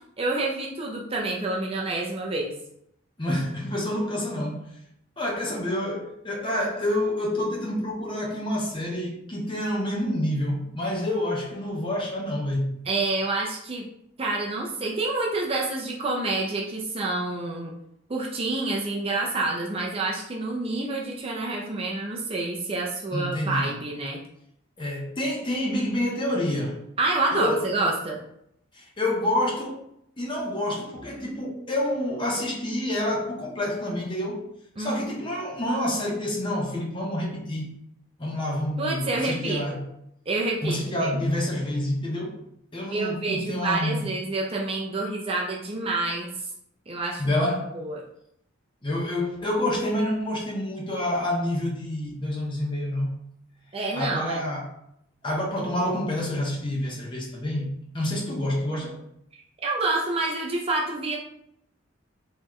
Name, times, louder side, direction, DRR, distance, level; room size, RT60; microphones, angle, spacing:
voice 1, 0.2-2.5 12.9-13.8 14.2-17.7 18.1-24.2 27.0-28.2 34.8-35.0 38.8-39.8 40.3-41.1 42.9-46.3 46.9-47.4 47.7-48.0 53.7-54.4 59.6-61.2, right 2 dB, 30° right, -1 dB, 0.5 m, -28 dB
voice 2, 3.2-4.7 5.2-12.7 23.1-23.7 24.8-26.8 27.3-27.7 28.7-29.8 30.2-34.5 34.8-37.8 38.2-39.8 40.6-42.4 42.7-44.1 47.2-47.7 48.8-53.1 53.9-54.7 55.2-59.0, left 1 dB, 25° left, -2 dB, 0.9 m, -28 dB
3.9 x 3.1 x 3.1 m, 0.75 s
head